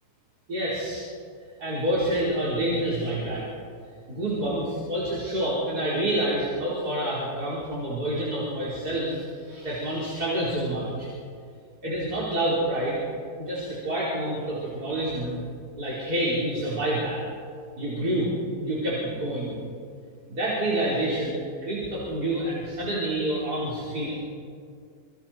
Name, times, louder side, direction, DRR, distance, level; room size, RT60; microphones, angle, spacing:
voice 1, 0.5-1.1 1.6-3.4 4.1-11.1 11.8-13.0 13.4-15.4 15.8-17.2 17.8-18.3 18.6-19.5 20.3-24.1, right 1 dB, 65° right, -7 dB, 4.9 m, -28 dB
27.5 x 24.5 x 4.5 m, 2.3 s
omnidirectional pair, 1.8 m